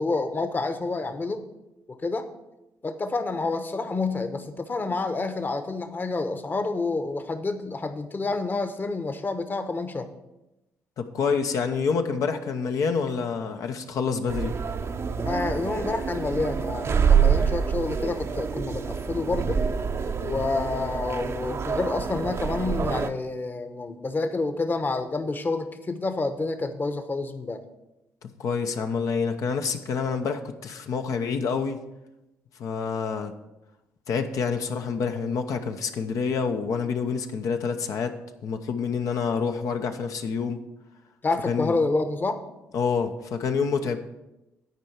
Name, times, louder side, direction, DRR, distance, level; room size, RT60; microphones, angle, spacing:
voice 1, 0.0-1.4 1.9-2.3 2.8-10.1 15.2-19.6 20.2-27.6 41.2-42.4, left 3 dB, 35° left, 9 dB, 1.1 m, -28 dB
voice 2, 11.0-14.5 28.4-31.8 32.6-33.3 34.1-38.1 38.4-40.6 41.5-41.8 42.7-44.0, left 5 dB, 65° left, 6 dB, 0.8 m, -27 dB
sound 1, 14.3-23.1, right 6 dB, 45° right, 0.7 m, -26 dB
9.6 x 4.5 x 7.3 m, 0.96 s
supercardioid pair, 60°, 6 cm